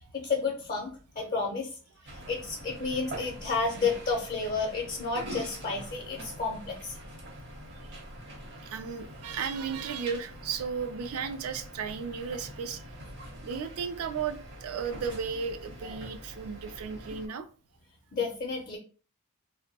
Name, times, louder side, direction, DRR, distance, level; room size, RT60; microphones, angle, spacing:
voice 1, 0.1-1.7 2.3-7.0 18.1-18.8, left 4 dB, 40° left, 0.4 m, -31 dB
sound 1, 2.0-17.3, equal, 50° right, 0.8 m, -44 dB
voice 2, 8.6-12.8 13.4-17.5, right 6 dB, 70° right, 0.4 m, -34 dB
2.5 x 2.0 x 2.8 m
head